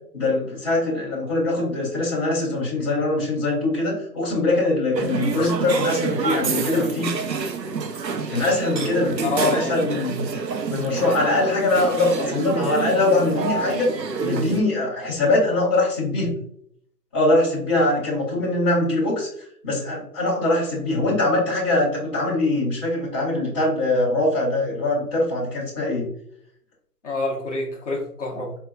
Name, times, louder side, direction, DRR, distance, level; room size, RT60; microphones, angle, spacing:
voice 1, 0.1-7.2 8.3-10.2 10.7-13.9 14.2-16.4 17.1-19.3 19.6-26.1, left 2 dB, 15° left, -11 dB, 1.7 m, -22 dB
sound 1, 4.9-14.6, right 5 dB, 90° right, 0.8 m, -27 dB
voice 2, 9.2-9.7 27.0-28.6, left 3 dB, 45° left, -2 dB, 1.1 m, -26 dB
4.5 x 3.5 x 2.4 m, 0.66 s
hypercardioid pair, 170°, 49 cm